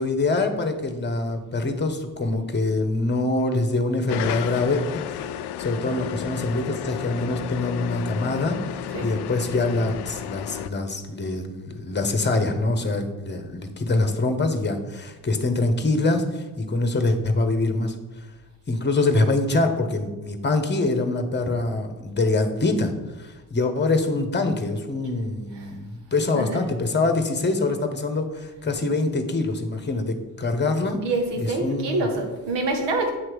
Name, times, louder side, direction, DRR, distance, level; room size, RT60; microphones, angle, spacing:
voice 1, 0.0-17.9 18.7-22.9 23.2-31.0 31.4-32.1, left 2 dB, 25° left, 7 dB, 1.2 m, -24 dB
sound 1, 4.1-10.7, left 11 dB, 65° left, 0.5 m, -32 dB
voice 2, 26.2-26.7 30.9-33.1, right 2 dB, 70° right, 3 dB, 1.6 m, -27 dB
8.0 x 3.2 x 6.3 m, 1.2 s
supercardioid pair, 65°, 43 cm